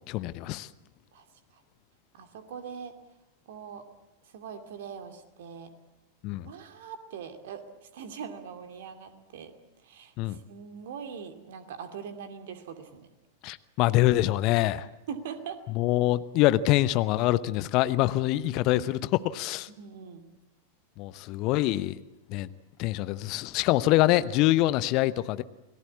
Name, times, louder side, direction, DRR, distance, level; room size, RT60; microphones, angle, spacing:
voice 1, 0.1-0.7 6.2-6.5 10.2-10.4 13.4-14.9 15.8-19.7 21.0-22.0 22.3-22.5 22.8-25.4, left 16 dB, 40° left, 16 dB, 0.9 m, -25 dB
voice 2, 2.1-3.0 3.5-3.8 4.3-5.7 6.4-9.5 9.8-13.1 15.1-15.6 18.3-18.6 19.7-20.3, right 7 dB, 55° right, 7 dB, 2.5 m, -42 dB
28.5 x 18.5 x 8.4 m, 1.0 s
figure-of-eight pair, 90°, 0 cm